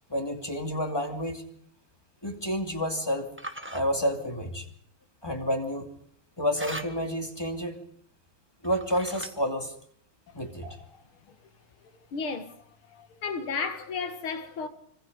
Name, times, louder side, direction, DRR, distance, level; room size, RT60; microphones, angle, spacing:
voice 1, 0.1-1.4 2.2-3.3 3.7-4.6 5.2-5.9 6.4-7.8 8.6-9.7 10.3-10.8, equal, 10° left, 2.6 m, -29 dB
sound 1, 0.8-1.1 3.4-3.8 6.6-7.2 8.6-9.5, right 1 dB, 10° right, 0.9 m, -40 dB
voice 2, 12.1-12.6 12.9-14.7, left 5 dB, 75° left, 2.6 m, -33 dB
26.0 x 25.5 x 5.4 m
omnidirectional pair, 2.4 m